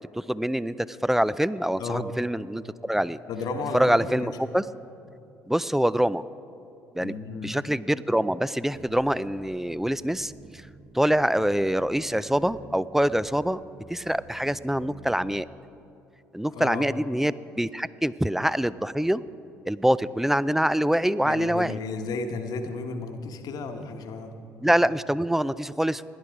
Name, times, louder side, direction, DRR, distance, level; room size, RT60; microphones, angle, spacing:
voice 1, 0.2-0.7 1.0-3.2 3.7-4.6 5.5-6.2 7.0-7.1 7.4-10.3 10.9-13.6 13.9-15.5 16.3-19.2 19.7-21.8 24.6-26.0, equal, 5° right, 17 dB, 0.4 m, -25 dB
voice 2, 1.8-2.1 3.3-4.4 7.0-7.6 16.5-16.9 21.2-24.3, left 3 dB, 55° left, 6 dB, 1.2 m, -33 dB
sound 1, 8.7-15.4, right 3 dB, 30° right, 0.7 m, -49 dB
17.0 x 10.5 x 4.8 m, 2.8 s
hypercardioid pair, 55°, 8 cm